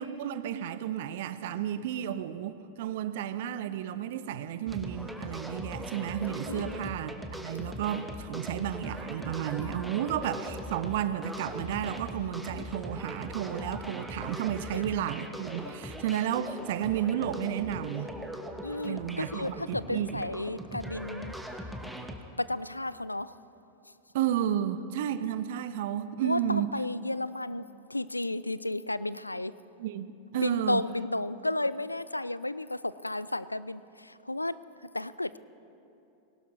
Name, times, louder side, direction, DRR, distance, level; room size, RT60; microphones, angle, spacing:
voice 1, 0.0-18.1 18.8-20.2 24.1-26.8 29.8-30.9, right 10 dB, 55° right, 13 dB, 0.6 m, -32 dB
sound 1, 4.7-22.2, equal, 5° right, 1.0 m, -40 dB
voice 2, 6.5-6.9 14.7-14.8 18.6-21.3 22.4-23.3 26.2-29.5 30.3-34.5 34.9-35.4, left 2 dB, 85° left, 17 dB, 0.3 m, -33 dB
20.5 x 18.0 x 3.1 m, 2.7 s
figure-of-eight pair, 90°, 0 cm